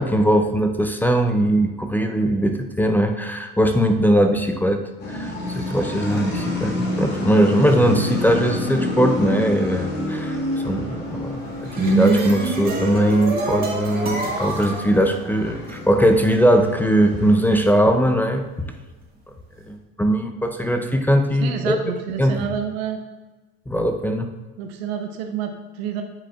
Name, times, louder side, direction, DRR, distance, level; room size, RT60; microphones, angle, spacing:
voice 1, 0.0-10.4 10.6-18.4 19.7-21.8 22.2-22.5 23.7-24.3, equal, 5° left, 5 dB, 0.4 m, -20 dB
sound 1, 5.0-17.6, left 1 dB, 35° left, 1.7 m, -29 dB
sound 2, 11.4-15.8, right 3 dB, 30° right, 1.6 m, -24 dB
voice 2, 21.4-23.0 24.6-26.0, right 7 dB, 75° right, 4 dB, 0.8 m, -28 dB
8.7 x 4.8 x 2.4 m, 1.2 s
supercardioid pair, 105°, 31 cm